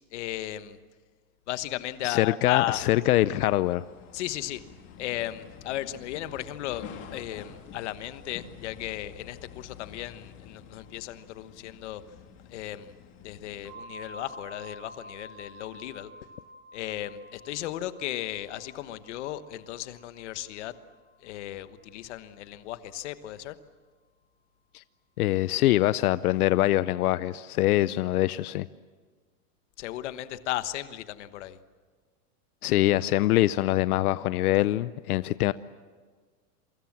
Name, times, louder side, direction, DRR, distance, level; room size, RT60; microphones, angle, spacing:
voice 1, 0.1-0.8 1.5-2.8 4.1-4.6 5.0-6.8 7.1-12.0 12.5-12.9 13.2-16.1 16.7-20.7 21.2-23.6 29.8-31.6, left 14 dB, 50° left, 12 dB, 1.3 m, -35 dB
voice 2, 2.0-3.8 24.7-24.8 25.2-28.7 32.6-35.5, left 15 dB, 85° left, 16 dB, 0.8 m, -24 dB
sound 1, 2.4-13.8, left 7 dB, 25° left, 2.5 m, -48 dB
sound 2, 13.6-23.3, right 1 dB, 80° right, 4.3 m, -50 dB
28.5 x 24.0 x 7.4 m, 1.5 s
supercardioid pair, 180°, 44 cm